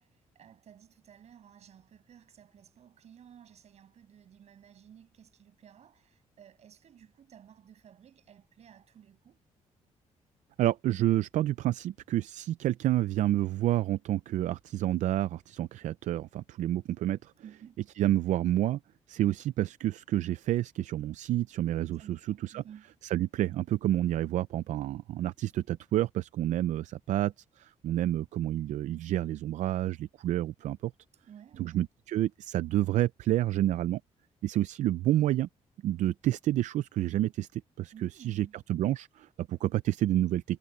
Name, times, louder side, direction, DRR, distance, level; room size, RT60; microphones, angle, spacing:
voice 1, 0.0-9.4 17.4-17.8 22.0-22.9 31.3-31.9 37.9-38.6, right 9 dB, 60° right, 7.3 m, -54 dB
voice 2, 10.6-17.3 18.0-18.8 19.1-22.6 23.0-30.9 31.6-34.0 34.4-35.5 35.8-40.6, right 13 dB, 80° right, 0.5 m, -29 dB
cardioid pair, 120°, 12 cm